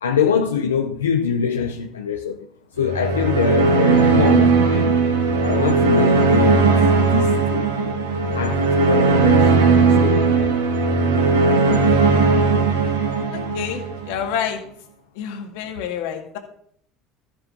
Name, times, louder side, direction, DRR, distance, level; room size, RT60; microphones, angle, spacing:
voice 1, 0.0-2.5 2.8-5.0 5.4-6.8 7.1-8.0 8.4-9.5 10.0-10.5, left 6 dB, 90° left, 0.6 m, -24 dB
sound 1, 2.8-14.1, right 4 dB, 85° right, 1.5 m, -17 dB
voice 2, 13.3-14.6 15.2-16.4, left 8 dB, 70° left, 1.9 m, -28 dB
14.0 x 7.9 x 2.8 m
hypercardioid pair, 75°, 0 cm